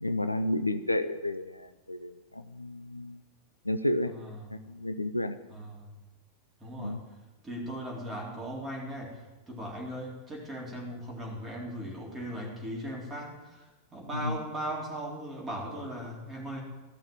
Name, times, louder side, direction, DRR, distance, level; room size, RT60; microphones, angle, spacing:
voice 1, 0.0-3.2 3.7-4.1 4.5-5.4 6.8-7.0 14.1-14.4, left 1 dB, 85° left, 11 dB, 0.5 m, -31 dB
voice 2, 4.1-4.5 5.5-5.9 6.6-7.0 7.4-9.2 9.5-13.6 13.9-16.6, right 1 dB, 15° right, -2 dB, 3.9 m, -38 dB
14.5 x 6.4 x 8.9 m, 1.1 s
figure-of-eight pair, 90°, 0 cm